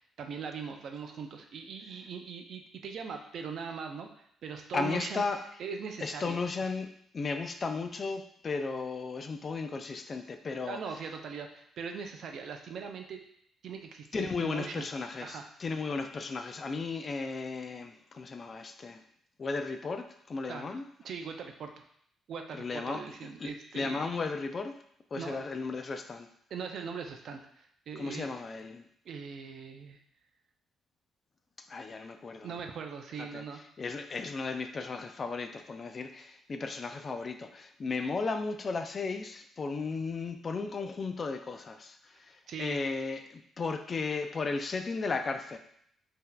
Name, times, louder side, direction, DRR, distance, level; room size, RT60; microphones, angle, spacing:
voice 1, 0.0-5.2 5.6-6.4 10.7-13.2 13.6-14.9 15.2-15.4 20.5-20.8 21.0-21.8 22.3-24.2 25.1-25.5 26.5-28.3 29.1-30.0 32.4-33.6 42.5-42.8, right 6 dB, 65° right, 5 dB, 0.4 m, -41 dB
voice 2, 4.7-5.4 6.0-10.8 14.1-19.0 19.4-20.8 22.5-24.8 25.1-26.3 28.0-28.8 31.7-32.5 33.2-33.4 33.8-45.6, left 4 dB, 40° left, 7 dB, 0.3 m, -35 dB
3.7 x 2.7 x 2.2 m, 0.68 s
cardioid pair, 90°, 0 cm